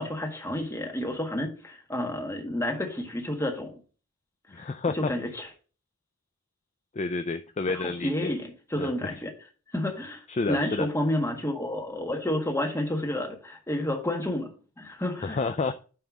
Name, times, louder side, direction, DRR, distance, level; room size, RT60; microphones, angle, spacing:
voice 1, 0.0-3.7 4.5-5.5 7.7-9.3 9.7-15.4, left 1 dB, 10° left, 1.6 m, -30 dB
voice 2, 4.5-5.4 6.9-8.3 8.8-9.2 10.3-10.9 15.2-15.7, left 3 dB, 30° left, 0.4 m, -30 dB
9.3 x 3.5 x 6.1 m
head